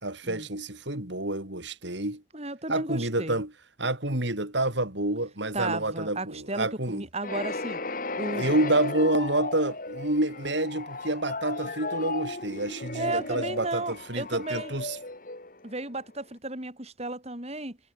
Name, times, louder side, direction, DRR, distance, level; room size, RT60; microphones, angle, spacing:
voice 1, 0.0-2.2 2.7-3.5 3.8-7.1 8.3-15.0, right 1 dB, 60° right, 4.2 m, -28 dB
voice 2, 2.3-3.4 5.5-7.8 8.2-8.5 12.9-14.7 15.6-17.8, right 2 dB, 30° right, 5.3 m, -34 dB
sound 1, 7.2-16.0, left 3 dB, 45° left, 3.0 m, -35 dB
head